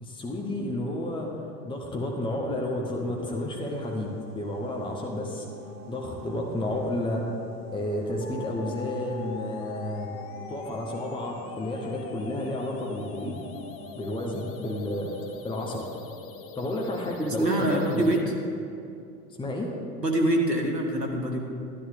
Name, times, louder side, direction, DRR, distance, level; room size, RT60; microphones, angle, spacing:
voice 1, 0.0-5.4 5.9-7.3 7.7-10.1 10.5-13.4 13.9-15.1 15.4-15.9 16.6-18.0 19.4-19.7, left 1 dB, 10° left, 0 dB, 1.1 m, -31 dB
sound 1, 2.5-17.2, equal, 35° right, 2.1 m, -47 dB
sound 2, 8.2-18.2, left 7 dB, 30° left, 0.7 m, -43 dB
voice 2, 17.2-18.2 20.0-21.4, right 1 dB, 90° right, 1 dB, 1.5 m, -25 dB
13.0 x 10.5 x 3.5 m, 2.5 s
figure-of-eight pair, 80°, 47 cm